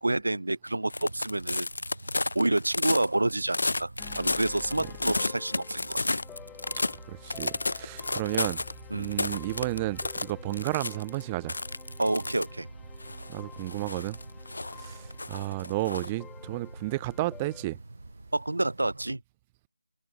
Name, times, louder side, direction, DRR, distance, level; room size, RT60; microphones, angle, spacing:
voice 1, 0.0-1.7 2.3-3.9 4.2-6.2 8.9-9.1 12.0-12.7 18.3-19.2, right 2 dB, 90° right, 3.3 m, -28 dB
Wind, 0.8-19.2, right 2 dB, 75° right, 6.9 m, -47 dB
sound 1, 0.9-7.0 7.3-8.7 9.0-11.2 11.5-12.5 13.0-16.1, left 2 dB, 65° left, 2.4 m, -32 dB
sound 2, 4.0-17.6, left 9 dB, 5° left, 1.9 m, -51 dB
voice 2, 7.1-8.6 8.9-11.6 13.3-14.2 14.7-17.8, right 20 dB, 10° right, 0.3 m, -32 dB
figure-of-eight pair, 175°, 0 cm